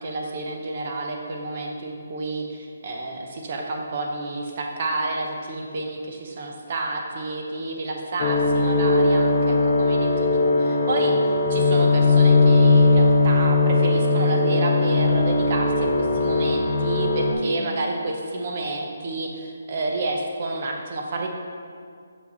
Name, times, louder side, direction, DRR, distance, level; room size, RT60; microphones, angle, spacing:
voice 1, 0.0-11.1 11.5-21.3, right 2 dB, 35° right, 1 dB, 0.7 m, -30 dB
sound 1, 8.2-17.3, left 2 dB, 25° left, 0.5 m, -19 dB
5.9 x 5.8 x 3.9 m, 2.2 s
hypercardioid pair, 175°, 0 cm